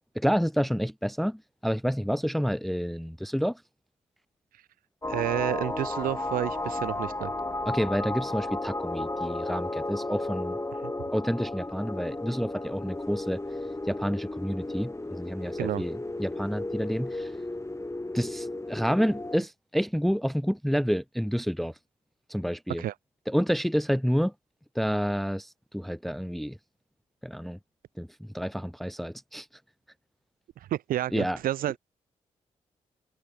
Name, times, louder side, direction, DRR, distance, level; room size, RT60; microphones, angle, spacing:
voice 1, 0.1-3.6 7.7-10.6 11.1-13.4 13.9-17.3 18.1-21.7 22.3-22.8 23.3-24.3 24.7-26.6 27.2-27.6 28.0-29.5 31.1-31.4, equal, ahead, 0.9 m, -29 dB
sound 1, 5.0-19.4, left 2 dB, 20° left, 5.2 m, -34 dB
voice 2, 5.1-7.3 10.8-10.9 15.6-15.8 22.8-22.9 30.6-31.8, right 13 dB, 75° right, 0.8 m, -30 dB
hypercardioid pair, 40°, 15 cm